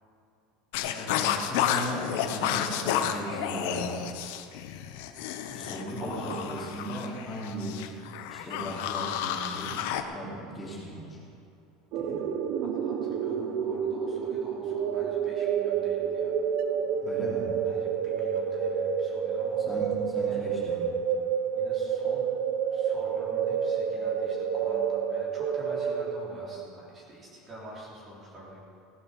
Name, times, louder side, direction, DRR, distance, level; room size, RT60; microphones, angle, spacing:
sound 1, 0.7-10.0, left 9 dB, 70° left, 1.0 m, -31 dB
voice 1, 0.9-4.1 5.5-7.8 8.3-9.8 10.1-11.2 11.9-12.2 17.0-17.5 19.7-20.9, equal, 15° left, -6 dB, 3.3 m, -37 dB
voice 2, 6.0-6.8 12.6-16.4 17.6-19.6 20.1-20.4 21.5-22.3 22.7-28.6, equal, 20° right, -4 dB, 3.2 m, -46 dB
sound 2, 11.9-26.6, right 7 dB, 50° right, 0.9 m, -29 dB
16.5 x 9.1 x 6.7 m, 2.7 s
cardioid pair, 160°, 0 cm